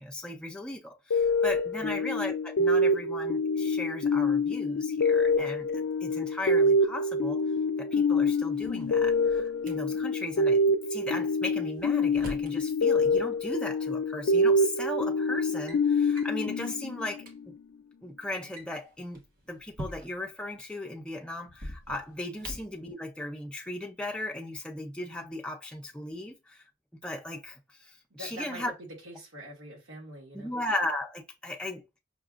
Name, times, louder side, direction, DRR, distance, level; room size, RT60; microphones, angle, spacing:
voice 1, 0.0-7.4 7.8-10.6 10.9-17.5 18.0-19.2 19.5-26.6 27.0-28.7 30.3-32.0, left 1 dB, 5° left, 0.5 m, -37 dB
Synth Lead, 1.1-17.4, left 2 dB, 70° left, 0.3 m, -26 dB
Drawer open or close, 8.4-9.7 11.4-12.6 13.9-14.0 14.8-15.0 15.4-15.8 16.1-16.4 16.9-17.0 17.2-17.3 18.3-20.3 21.5-22.8, equal, 45° right, 0.9 m, -44 dB
voice 2, 28.2-30.6, right 1 dB, 85° right, 1.7 m, -44 dB
5.6 x 2.4 x 2.4 m
head